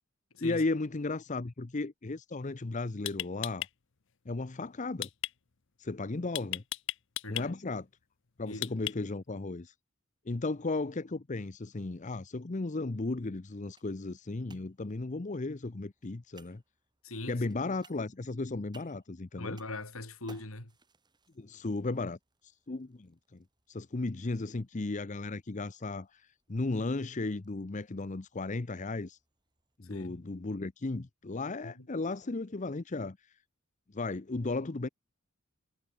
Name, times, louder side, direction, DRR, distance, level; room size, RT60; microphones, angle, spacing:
voice 1, 0.4-3.7 4.3-5.1 5.8-6.6 7.3-7.8 8.4-9.7 10.3-16.6 17.3-19.6 21.4-22.2 22.4-23.4 23.7-29.2 29.8-33.2 33.9-34.9, left 3 dB, 35° left, 0.7 m, -35 dB
sound 1, 2.4-2.6 3.1-3.7 5.0-5.3 6.3-7.5 8.6-9.2, left 14 dB, 60° left, 0.9 m, -35 dB
voice 2, 7.2-7.5 8.5-8.6 17.0-17.4 19.4-20.7 29.9-30.2 31.6-31.9, left 2 dB, 80° left, 4.7 m, -41 dB
sound 2, 11.9-29.8, right 3 dB, 20° right, 7.5 m, -65 dB
head